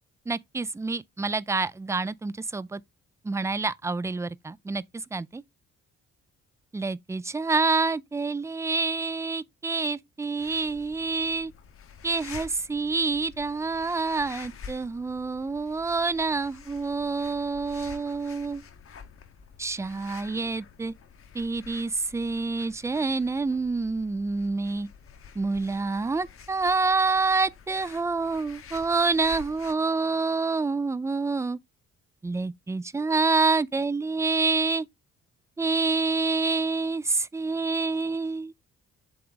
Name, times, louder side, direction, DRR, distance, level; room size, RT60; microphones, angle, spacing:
voice 1, 0.3-2.8 3.2-4.8 5.1-5.4 6.7-11.5 12.0-18.6 19.6-20.9 21.3-24.9 25.4-31.6 32.2-34.9 35.6-38.5, right 3 dB, 10° right, 0.4 m, -27 dB
sound 1, 10.4-29.7, left 7 dB, 45° left, 1.0 m, -48 dB
7.8 x 3.4 x 3.9 m
cardioid pair, 90°, 30 cm